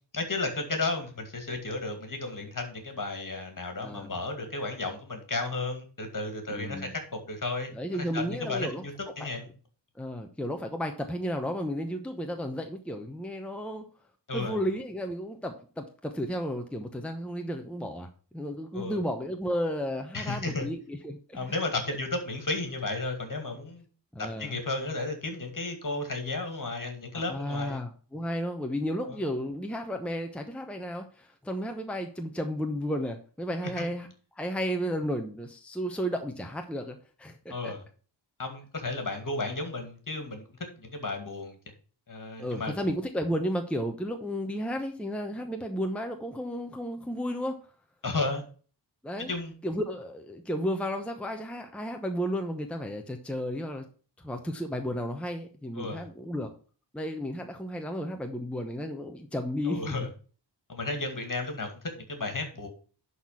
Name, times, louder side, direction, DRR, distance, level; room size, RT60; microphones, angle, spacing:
voice 1, 0.1-9.5 14.3-14.6 18.7-19.0 20.1-20.7 21.3-23.9 24.2-27.8 29.0-29.2 33.6-33.9 37.5-37.8 38.4-40.4 40.8-41.6 42.1-42.7 48.0-48.4 49.2-49.5 55.7-56.1 59.6-60.1 60.7-62.7, left 3 dB, 45° left, 5 dB, 2.4 m, -33 dB
voice 2, 6.5-6.9 7.7-8.8 10.0-13.9 14.3-21.5 24.1-24.6 27.1-34.1 34.4-37.7 42.4-47.6 49.0-49.3 49.6-53.9 54.2-56.5 56.9-59.9, equal, 5° left, 4 dB, 0.9 m, -33 dB
11.0 x 4.2 x 5.6 m, 0.40 s
wide cardioid pair, 115°, 43 cm